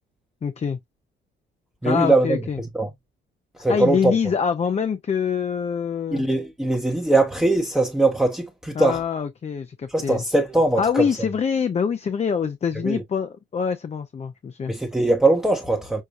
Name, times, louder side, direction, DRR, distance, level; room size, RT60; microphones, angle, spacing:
voice 1, 0.4-0.8 1.8-2.6 3.7-6.2 8.8-10.2 10.8-14.7, left 6 dB, 35° left, 0.6 m, -25 dB
voice 2, 1.8-2.9 3.6-4.2 6.1-9.0 9.9-11.1 12.8-13.0 14.7-16.0, right 2 dB, 5° right, 0.8 m, -21 dB
6.4 x 2.2 x 2.6 m
cardioid pair, 90°, 20 cm